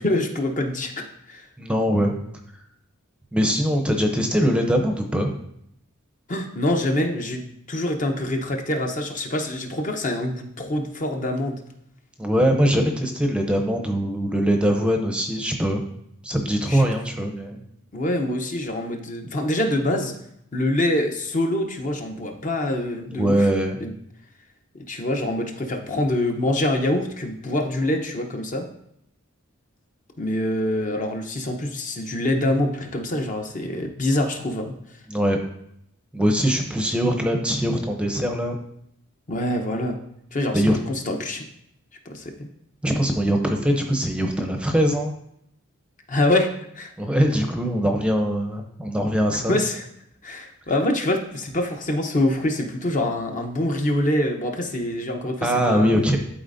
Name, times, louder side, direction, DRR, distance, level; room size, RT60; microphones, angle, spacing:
voice 1, 0.0-1.5 6.3-11.6 16.7-16.9 17.9-20.2 20.5-23.5 23.8-23.9 24.7-28.7 30.2-34.8 39.3-40.0 40.3-41.4 42.1-42.5 46.1-46.9 49.5-49.8 50.2-55.9, left 1 dB, 40° left, 3 dB, 0.7 m, -25 dB
voice 2, 1.6-2.1 3.3-5.3 12.2-15.8 16.2-17.6 23.1-23.8 35.1-35.4 36.1-38.5 40.5-40.8 42.8-45.1 47.0-49.6 55.4-56.2, equal, 5° right, 3 dB, 0.6 m, -22 dB
11.5 x 4.1 x 2.6 m, 0.75 s
head